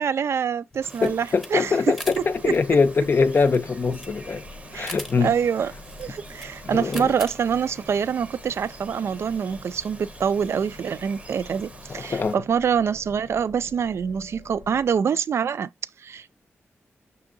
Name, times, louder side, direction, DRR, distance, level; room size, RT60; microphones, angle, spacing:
voice 1, 0.0-1.7 2.4-2.5 4.7-4.9 5.2-5.7 6.0-15.7 16.0-16.3, right 7 dB, 70° right, 0.3 m, -25 dB
sound 1, 0.7-8.0, equal, ahead, 0.8 m, -42 dB
Bird vocalization bird call bird song, 0.8-12.4, right 2 dB, 25° right, 0.7 m, -46 dB
voice 2, 1.0-4.4 4.7-5.3 6.6-7.1 11.9-12.4, left 4 dB, 45° left, 0.4 m, -23 dB
sound 2, 2.0-15.0, left 3 dB, 90° left, 0.7 m, -46 dB
6.1 x 2.7 x 2.5 m
wide cardioid pair, 95°, 5 cm